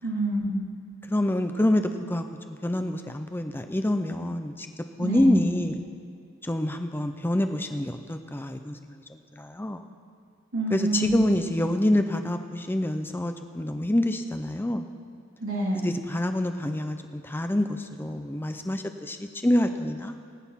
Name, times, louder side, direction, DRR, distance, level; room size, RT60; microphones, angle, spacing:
voice 1, 0.0-0.6 5.0-5.4 10.5-11.4 15.4-15.9, right 1 dB, 70° right, -4 dB, 3.3 m, -27 dB
voice 2, 1.1-4.7 5.0-5.8 6.4-8.8 9.1-9.8 10.7-14.9 15.8-17.0 17.2-20.1, left 1 dB, 10° left, 7 dB, 0.5 m, -27 dB
20.0 x 9.3 x 5.7 m, 2.2 s
head